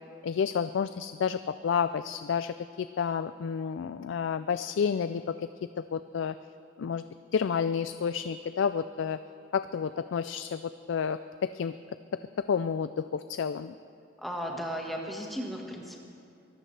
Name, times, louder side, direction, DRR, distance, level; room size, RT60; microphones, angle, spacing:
voice 1, 0.2-5.3 5.9-6.3 6.8-7.0 7.3-9.2 9.5-11.7 12.5-13.7, left 6 dB, 70° left, 12 dB, 0.3 m, -30 dB
voice 2, 14.2-16.0, equal, ahead, -1 dB, 1.5 m, -35 dB
23.5 x 14.0 x 3.3 m, 2.6 s
head